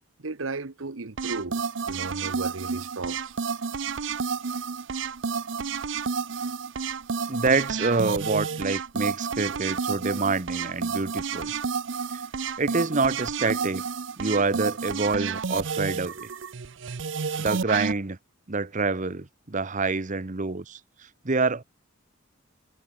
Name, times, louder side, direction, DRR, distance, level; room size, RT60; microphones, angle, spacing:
voice 1, 0.2-3.3, right 3 dB, 80° right, 1.1 m, -35 dB
sound 1, 1.2-17.9, right 5 dB, 65° right, 0.7 m, -30 dB
voice 2, 7.3-11.5 12.1-12.2 12.6-13.8 14.2-16.3 17.4-18.2 18.5-20.8 21.2-21.6, right 3 dB, 40° right, 1.0 m, -26 dB
head